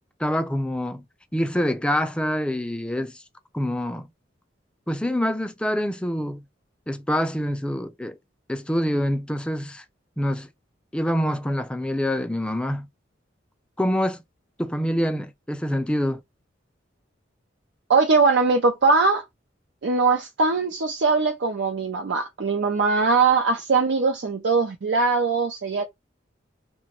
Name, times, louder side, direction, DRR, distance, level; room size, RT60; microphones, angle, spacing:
voice 1, 0.2-1.0 1.3-3.2 3.5-4.1 4.9-6.4 6.9-8.2 8.5-9.8 10.2-10.5 10.9-12.9 13.8-14.2 14.6-16.2, equal, 5° left, 0.3 m, -26 dB
voice 2, 17.9-19.2 19.8-25.8, right 4 dB, 80° right, 0.5 m, -21 dB
3.0 x 2.2 x 2.9 m
head